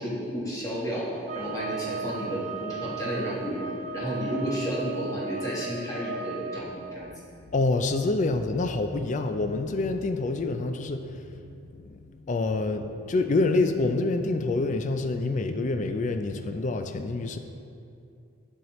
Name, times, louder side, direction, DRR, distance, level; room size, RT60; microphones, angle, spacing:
voice 1, 0.0-3.6 3.9-7.1, equal, 15° left, -6 dB, 1.3 m, -32 dB
sound 1, 1.2-6.7, right 5 dB, 35° right, 0.5 m, -36 dB
voice 2, 7.5-12.0 12.3-17.4, left 3 dB, 40° left, 7 dB, 0.3 m, -27 dB
7.8 x 6.4 x 3.1 m, 2.5 s
head